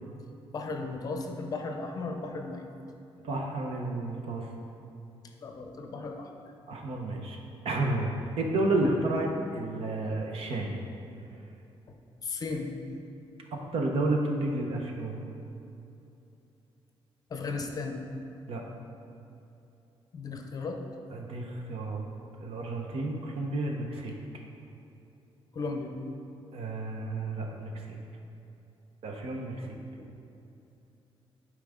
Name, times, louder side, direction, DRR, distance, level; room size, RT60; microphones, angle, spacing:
voice 1, 0.5-2.6 5.4-6.3 12.2-12.7 17.3-18.0 20.1-20.8 25.5-26.0 30.0-30.1, left 3 dB, 40° left, 3 dB, 0.7 m, -35 dB
voice 2, 3.2-4.5 6.7-10.7 13.7-15.2 18.5-18.6 21.1-22.0 22.4-24.1 26.5-27.9 29.0-29.7, right 2 dB, 70° right, 1 dB, 1.0 m, -31 dB
11.5 x 4.8 x 3.7 m, 2.8 s
wide cardioid pair, 170°, 10 cm